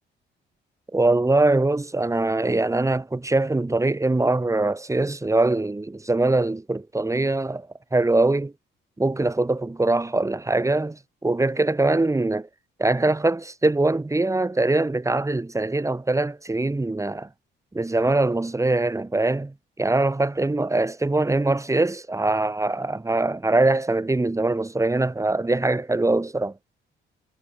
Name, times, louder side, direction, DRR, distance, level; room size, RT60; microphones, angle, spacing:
voice 1, 0.9-8.5 9.0-12.5 12.8-17.3 17.7-26.5, right 2 dB, 15° right, 2.5 m, -22 dB
cardioid pair, 90°, 20 cm